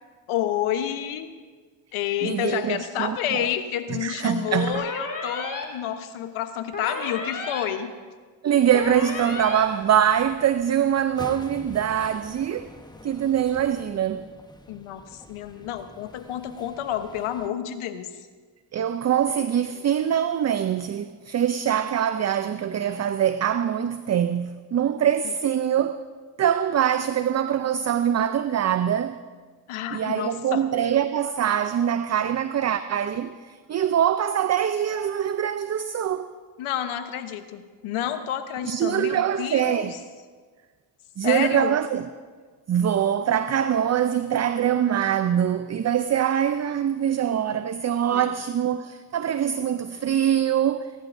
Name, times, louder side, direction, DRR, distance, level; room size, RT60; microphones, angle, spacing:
voice 1, 0.3-1.3 1.9-7.9 14.7-18.1 25.2-25.3 29.7-30.6 36.6-40.0 41.2-41.8 48.1-48.3, left 10 dB, 85° left, 1.1 m, -29 dB
voice 2, 2.2-3.5 4.0-4.8 6.9-7.0 8.4-12.7 13.0-14.3 18.7-26.0 26.4-29.2 29.9-36.3 38.6-40.0 41.2-42.1 42.7-50.9, right 9 dB, 35° right, 0.5 m, -23 dB
sound 1, 4.7-5.6 6.7-7.6 8.7-9.6, left 3 dB, 40° left, 2.5 m, -32 dB
sound 2, 8.6-17.5, left 2 dB, 10° left, 0.9 m, -47 dB
28.5 x 12.0 x 2.6 m
cardioid pair, 70°, 49 cm